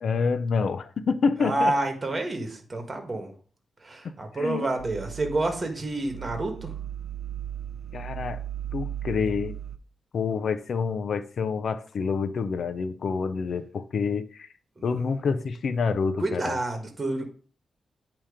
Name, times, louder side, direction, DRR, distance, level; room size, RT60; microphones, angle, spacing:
voice 1, 0.0-1.8 4.3-4.7 7.9-8.4 8.7-9.6 10.1-14.5 14.8-16.6, left 5 dB, 70° left, 0.5 m, -27 dB
voice 2, 1.4-3.3 3.8-6.7 14.8-14.9 16.2-17.2, right 2 dB, 30° right, 1.4 m, -29 dB
sound 1, 4.8-9.8, right 10 dB, 65° right, 0.5 m, -36 dB
8.8 x 3.0 x 4.9 m
cardioid pair, 95°, 0 cm